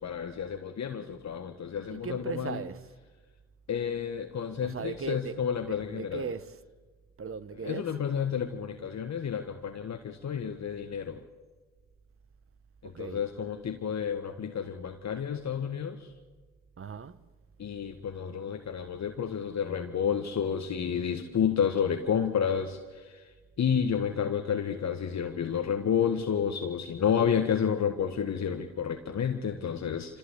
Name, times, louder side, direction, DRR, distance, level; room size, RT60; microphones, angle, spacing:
voice 1, 0.0-2.6 3.7-6.2 7.6-11.2 12.8-16.1 17.6-23.3 23.6-30.2, left 7 dB, 50° left, 1.6 m, -30 dB
voice 2, 1.9-2.9 4.6-6.6 7.2-8.1 12.8-13.3 16.8-17.3, right 6 dB, 40° right, 1.2 m, -38 dB
27.5 x 15.0 x 8.5 m
supercardioid pair, 60°, 36 cm